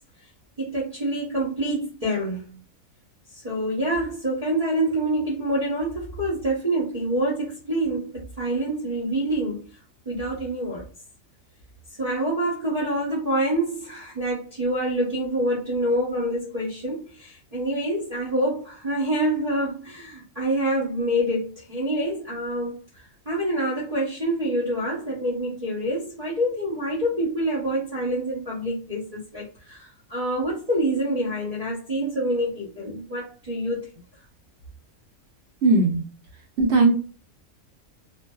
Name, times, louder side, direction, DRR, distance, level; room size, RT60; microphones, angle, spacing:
voice 1, 0.6-2.6 3.3-9.7 10.0-10.8 12.0-33.9, right 1 dB, 35° right, 0.8 m, -26 dB
voice 2, 35.6-36.0 36.6-36.9, right 3 dB, 65° right, 0.8 m, -18 dB
2.5 x 2.2 x 2.2 m
omnidirectional pair, 1.5 m